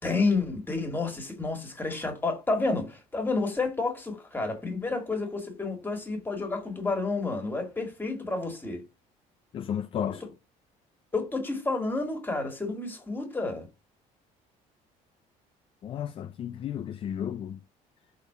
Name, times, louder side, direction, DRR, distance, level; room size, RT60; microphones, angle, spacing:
voice 1, 0.0-8.8 11.1-13.7, left 3 dB, 15° left, 1.9 m, -30 dB
voice 2, 9.5-10.2 15.8-17.6, left 9 dB, 35° left, 0.4 m, -33 dB
5.3 x 4.0 x 5.5 m
cardioid pair, 135°, 15 cm